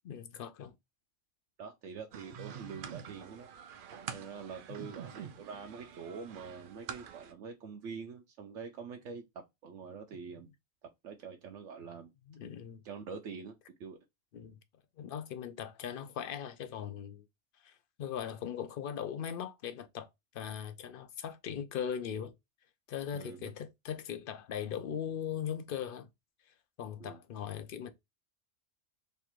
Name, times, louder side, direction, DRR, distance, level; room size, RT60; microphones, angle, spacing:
voice 1, 0.0-0.7 4.7-4.9 12.3-12.8 14.3-14.6 15.0-17.2 17.6-20.1 20.3-22.3 22.9-26.1 26.8-27.9, left 8 dB, 60° left, 0.6 m, -39 dB
voice 2, 1.6-3.5 4.1-10.5 10.8-12.1 12.8-14.0 23.1-23.5 27.0-27.2, right 5 dB, 75° right, 0.9 m, -45 dB
sound 1, 2.1-7.3, right 8 dB, 60° right, 0.6 m, -46 dB
3.2 x 2.5 x 4.3 m
omnidirectional pair, 1.3 m